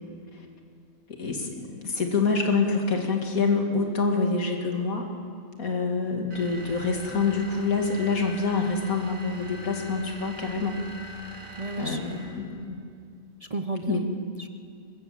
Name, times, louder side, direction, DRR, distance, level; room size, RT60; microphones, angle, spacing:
voice 1, 1.1-5.1 5.6-10.8 11.8-12.8 13.9-14.0, left 4 dB, 85° left, 2 dB, 2.7 m, -26 dB
sound 1, 6.3-12.5, equal, 75° right, 2.7 m, -43 dB
voice 2, 11.6-12.3 13.4-14.5, right 2 dB, 35° right, 7 dB, 0.7 m, -34 dB
23.5 x 21.0 x 7.6 m, 2.3 s
omnidirectional pair, 1.4 m